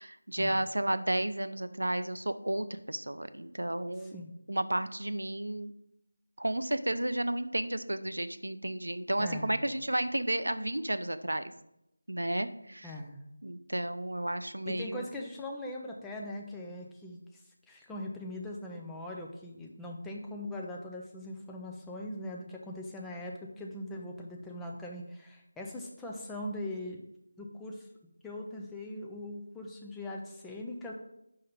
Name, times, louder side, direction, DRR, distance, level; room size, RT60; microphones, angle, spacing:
voice 1, 0.0-4.2 4.5-5.7 6.4-11.4 12.1-12.9 13.4-15.1, right 1 dB, 75° right, 12 dB, 0.4 m, -32 dB
voice 2, 4.0-4.3 9.2-9.6 12.8-13.2 14.7-17.2 17.7-27.0 27.4-27.9 28.2-30.9, left 1 dB, 5° left, -1 dB, 0.4 m, -41 dB
5.3 x 3.7 x 5.7 m, 0.82 s
figure-of-eight pair, 165°, 0 cm